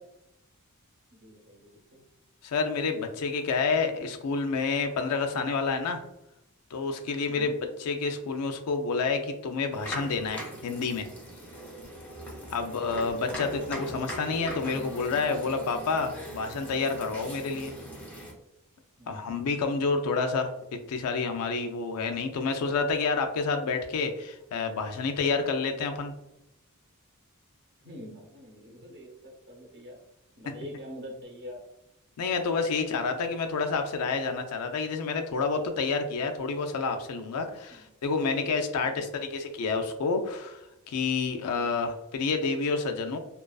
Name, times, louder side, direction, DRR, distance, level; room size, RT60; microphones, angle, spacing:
voice 1, 1.1-2.0 7.2-7.5 19.0-19.3 27.8-30.0 30.4-31.6 37.7-37.8 38.8-39.1, left 1 dB, 50° right, -1 dB, 0.7 m, -45 dB
voice 2, 2.4-6.0 6.7-11.1 12.5-17.7 19.1-20.5 20.9-26.1 32.2-40.6 40.9-43.2, left 4 dB, 80° left, 5 dB, 0.4 m, -29 dB
sound 1, 9.7-18.3, equal, 5° left, 0.5 m, -40 dB
2.3 x 2.3 x 2.2 m, 0.86 s
head